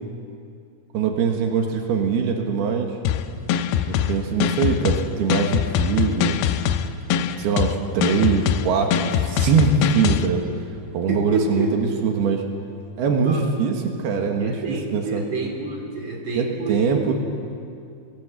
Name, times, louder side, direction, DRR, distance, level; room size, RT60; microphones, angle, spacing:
voice 1, 0.9-3.0 3.9-6.4 7.4-10.4 10.9-12.4 13.0-15.2 16.4-17.1, right 5 dB, 80° right, 3 dB, 3.6 m, -22 dB
sound 1, 3.1-10.3, left 9 dB, 80° left, 2.6 m, -23 dB
voice 2, 10.8-12.0 13.2-13.5 14.4-17.1, right 3 dB, 35° right, 2 dB, 3.3 m, -28 dB
23.5 x 17.5 x 8.0 m, 2.4 s
omnidirectional pair, 4.5 m